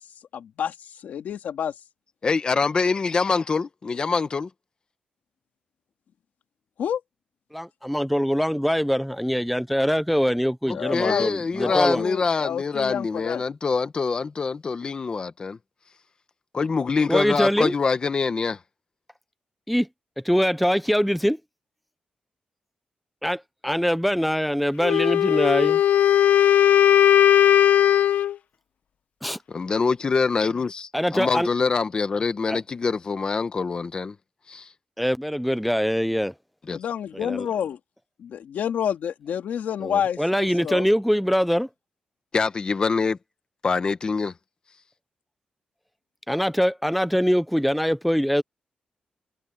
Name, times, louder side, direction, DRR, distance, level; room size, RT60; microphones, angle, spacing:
voice 1, 0.3-1.7 6.8-7.0 10.7-13.4 36.7-37.8 38.2-40.9, left 8 dB, 90° left, 2.2 m, -29 dB
voice 2, 2.2-4.5 10.7-15.6 16.5-18.6 29.5-34.1 34.5-34.7 36.7-36.8 42.3-43.2 43.6-44.3, left 4 dB, 30° left, 1.0 m, -25 dB
voice 3, 7.5-12.1 17.1-17.7 19.7-19.9 20.2-21.4 23.2-25.8 29.2-29.4 30.9-31.5 32.5-32.6 35.0-36.3 37.2-37.5 39.8-41.7 46.3-48.4, equal, ahead, 0.4 m, -23 dB
Wind instrument woodwind instrument, 24.8-28.3, left 11 dB, 65° left, 0.9 m, -17 dB
wide cardioid pair, 170°, 3 cm